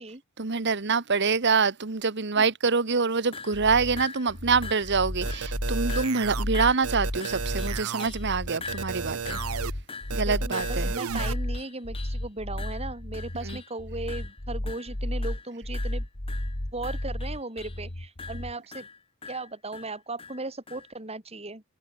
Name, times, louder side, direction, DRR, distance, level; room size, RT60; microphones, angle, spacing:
voice 1, 0.4-9.4 10.1-10.9 13.4-13.6, right 5 dB, 55° right, 1.3 m, -25 dB
sound 1, 3.3-3.6 4.0-4.4 4.6-5.0 5.3-5.6 5.9-6.3 6.5-8.3 8.6-12.2 12.6-13.8 14.1-14.4 14.7-14.9 15.2-15.5 15.7-17.8 18.2-20.9, left 5 dB, 25° left, 1.4 m, -42 dB
sound 2, 3.5-18.5, left 1 dB, 40° left, 2.2 m, -33 dB
sound 3, 5.2-6.4 6.8-8.1 8.5-9.7 10.1-11.3, right 7 dB, 85° right, 0.7 m, -33 dB
voice 2, 10.2-16.0 16.7-18.9 19.3-21.6, right 2 dB, 30° right, 4.8 m, -37 dB
head